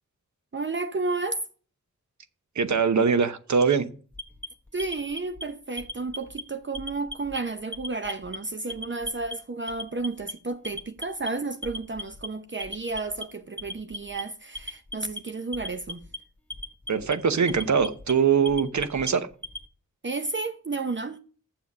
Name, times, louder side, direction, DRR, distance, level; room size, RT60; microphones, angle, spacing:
voice 1, 0.5-1.4 4.7-16.0 20.0-21.2, right 3 dB, 35° right, 0.8 m, -32 dB
voice 2, 2.5-3.9 16.9-19.3, right 6 dB, 65° right, 0.9 m, -22 dB
Alarm, 4.1-5.4 5.8-6.4 6.7-7.4 7.7-8.4 8.7-9.3 9.7-10.3 10.7-11.3 11.6-12.3 12.6-13.2 13.6-14.2 14.6-15.2 15.5-16.2 16.5-17.1 17.5-18.1 18.5-19.6, left 1 dB, 5° left, 1.3 m, -37 dB
7.2 x 7.1 x 6.2 m
cardioid pair, 50°, 31 cm